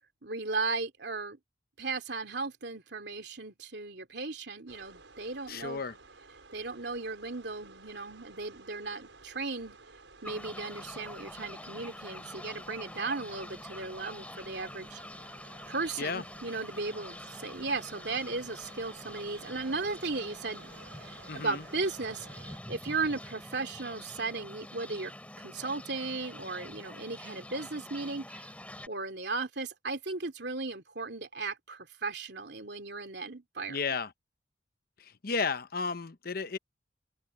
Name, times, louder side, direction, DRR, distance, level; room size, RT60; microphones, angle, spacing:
voice 1, 0.2-1.4 1.8-5.8 6.5-9.8 10.2-15.0 15.7-20.7 21.0-28.5 28.9-33.8, right 3 dB, 65° right, 3.2 m, -36 dB
sound 1, 4.7-22.6, right 3 dB, 85° right, 6.2 m, -54 dB
voice 2, 5.5-6.0 16.0-16.2 21.3-21.6 33.7-34.1 35.0-36.6, left 4 dB, 55° left, 0.9 m, -33 dB
sound 2, 10.2-28.9, left 1 dB, 5° left, 7.0 m, -46 dB
open air
head